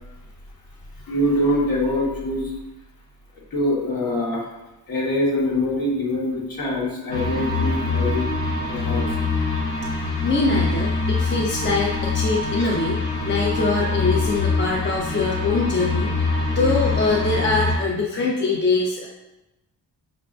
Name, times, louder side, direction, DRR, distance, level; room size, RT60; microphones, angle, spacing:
voice 1, 1.0-2.5 3.5-4.4 4.9-8.3 8.6-9.1 12.6-12.7, left 1 dB, 60° left, -5 dB, 1.5 m, -24 dB
sound 1, 7.1-17.8, left 3 dB, 75° left, 1.1 m, -24 dB
voice 2, 10.2-13.0 13.3-19.1, left 3 dB, 30° left, -3 dB, 0.6 m, -23 dB
5.8 x 2.2 x 2.5 m, 0.99 s
cardioid pair, 65°, 40 cm